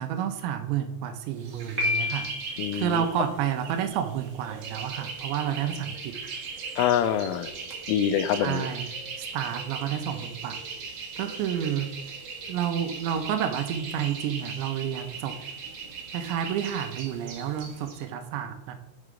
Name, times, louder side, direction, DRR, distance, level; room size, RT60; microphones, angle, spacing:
voice 1, 0.0-6.2 8.3-8.9 9.2-10.6 11.2-11.9 12.5-15.4 16.1-18.8, right 9 dB, 80° right, 7 dB, 2.9 m, -30 dB
sound 1, 1.4-18.0, right 5 dB, 65° right, 2.6 m, -39 dB
Piano, 1.8-2.7, left 3 dB, 40° right, 1.2 m, -28 dB
voice 2, 2.6-3.0 6.8-7.5 7.9-8.7, left 9 dB, 90° left, 10 dB, 3.1 m, -25 dB
7.6 x 4.8 x 5.0 m, 0.80 s
omnidirectional pair, 5.5 m